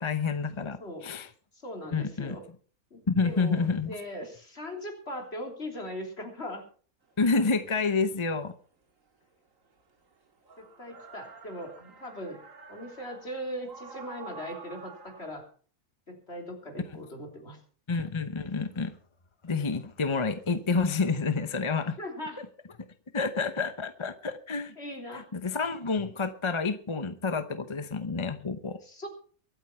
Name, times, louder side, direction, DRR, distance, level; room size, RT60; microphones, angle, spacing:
voice 1, 0.0-1.3 1.9-2.4 3.1-3.9 7.2-8.5 17.9-18.9 19.4-22.0 22.4-22.5 23.1-24.7 25.1-28.8, left 4 dB, 25° left, 0.7 m, -29 dB
voice 2, 1.5-2.4 2.9-6.7 10.8-12.4 12.7-15.5 16.1-17.6 22.0-22.4 24.8-25.2 28.8-29.1, equal, 45° left, 3.5 m, -39 dB
sound 1, 7.1-7.2 9.6-15.3, right 4 dB, 60° right, 2.4 m, -48 dB
23.0 x 8.8 x 4.4 m
omnidirectional pair, 1.6 m